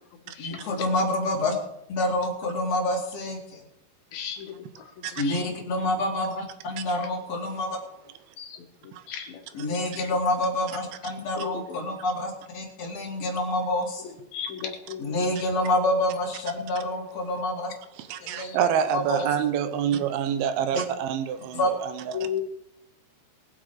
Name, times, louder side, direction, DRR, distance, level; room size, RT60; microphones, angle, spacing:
voice 1, 0.4-1.5 1.9-3.6 5.2-7.8 9.5-14.1 15.0-17.7 18.2-18.6 18.9-19.3 20.7-20.8 21.5-21.7, left 1 dB, 40° left, 3.0 m, -27 dB
voice 2, 4.1-4.5 5.1-5.3 8.4-8.6 9.1-9.4 11.4-11.5 14.3-15.1 18.4-18.6 22.1-22.4, left 8 dB, 60° left, 3.1 m, -34 dB
voice 3, 18.0-22.4, right 8 dB, 80° right, 2.2 m, -27 dB
21.5 x 7.9 x 5.0 m
omnidirectional pair, 5.6 m